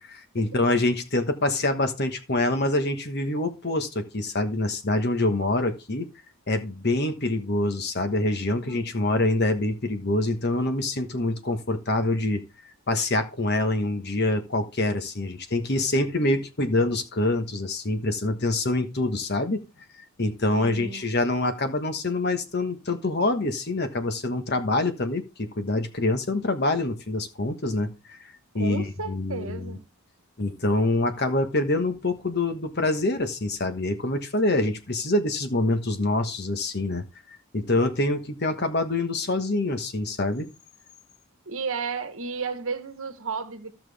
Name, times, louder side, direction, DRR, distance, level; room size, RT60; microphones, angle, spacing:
voice 1, 0.0-6.1 6.5-12.4 12.9-19.6 20.2-29.8 30.4-37.1 37.5-40.5, left 2 dB, 45° left, 1.3 m, -25 dB
voice 2, 20.5-21.1 28.5-29.8 41.5-43.7, right 4 dB, 65° right, 1.2 m, -33 dB
14.5 x 5.9 x 3.5 m
head